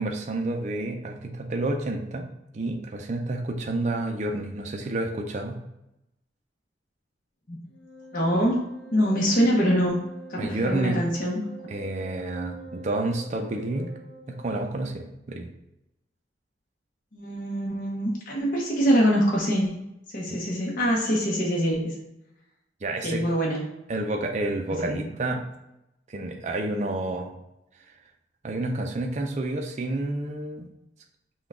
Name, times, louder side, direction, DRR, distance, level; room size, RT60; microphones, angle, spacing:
voice 1, 0.0-2.3 2.5-5.6 10.4-11.0 11.7-13.9 14.3-15.5 20.3-20.4 22.8-23.2 23.9-25.4 26.1-27.3 28.4-30.7, right 2 dB, 40° right, 3 dB, 0.4 m, -29 dB
Wind instrument woodwind instrument, 7.7-14.7, right 1 dB, 85° left, 0.7 m, -45 dB
voice 2, 8.1-8.6 8.9-10.0 10.3-11.7 17.1-19.8 20.1-22.0 23.0-23.6 24.8-25.0, equal, 50° left, -3 dB, 0.9 m, -24 dB
5.9 x 2.3 x 3.5 m, 0.88 s
head